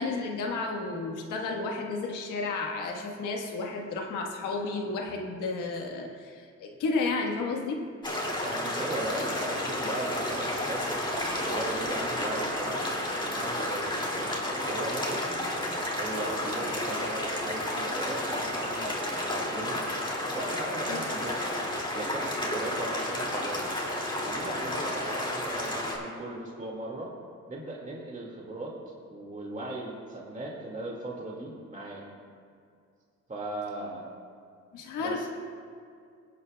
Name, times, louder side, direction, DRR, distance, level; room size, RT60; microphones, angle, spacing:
voice 1, 0.0-7.8 20.9-21.0 34.7-35.3, left 3 dB, 85° left, 1 dB, 1.4 m, -32 dB
sound 1, 8.0-26.0, left 1 dB, 15° left, 2.4 m, -31 dB
voice 2, 8.4-12.9 13.2-19.8 20.3-21.4 21.9-23.7 24.3-27.2 27.5-28.8 29.1-32.0 33.3-34.2 35.0-35.3, right 2 dB, 25° right, -3 dB, 2.1 m, -38 dB
21.5 x 8.4 x 2.3 m, 2.3 s
cardioid pair, 90°, 30 cm